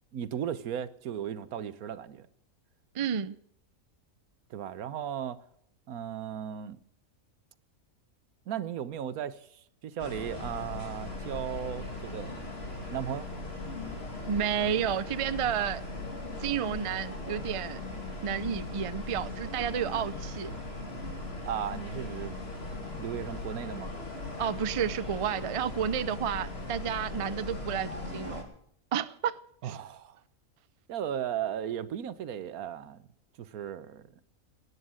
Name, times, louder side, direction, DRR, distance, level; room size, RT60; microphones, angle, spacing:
voice 1, 0.1-2.3 4.5-5.4 5.9-6.8 8.5-12.4 12.9-13.3 21.4-22.3 23.0-23.9 29.6-30.2 30.9-33.1 33.4-34.1, right 9 dB, 85° right, 1.3 m, -36 dB
voice 2, 2.9-3.4 14.3-15.8 16.4-17.8 18.2-20.5 24.4-28.4 28.9-29.4 29.6-29.8, right 8 dB, 60° right, 0.3 m, -31 dB
sound 1, 10.0-28.4, left 2 dB, 45° left, 2.9 m, -39 dB
18.5 x 9.7 x 6.3 m
omnidirectional pair, 1.5 m